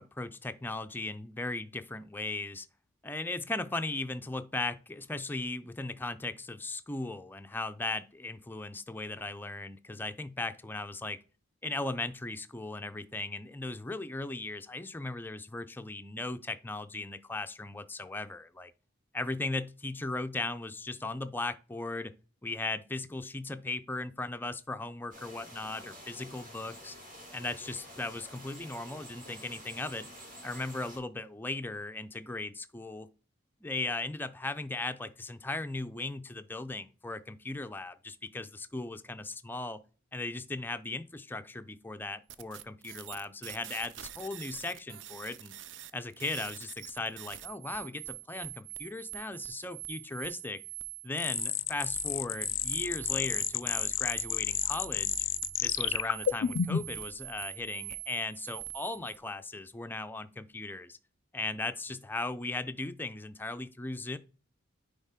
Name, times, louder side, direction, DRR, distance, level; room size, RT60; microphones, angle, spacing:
voice 1, 0.0-2.7 3.0-11.2 11.6-18.7 19.1-22.1 22.4-26.9 27.3-30.1 30.4-33.1 33.6-39.8 40.1-45.5 45.9-50.6 51.0-55.2 55.6-61.0 61.3-64.2, left 2 dB, 10° left, 0.4 m, -37 dB
sound 1, 25.1-31.0, equal, 45° right, 4.1 m, -49 dB
sound 2, 42.3-59.2, right 15 dB, 65° right, 0.5 m, -44 dB
sound 3, 51.2-57.0, left 10 dB, 70° left, 0.4 m, -31 dB
9.7 x 3.5 x 3.7 m
head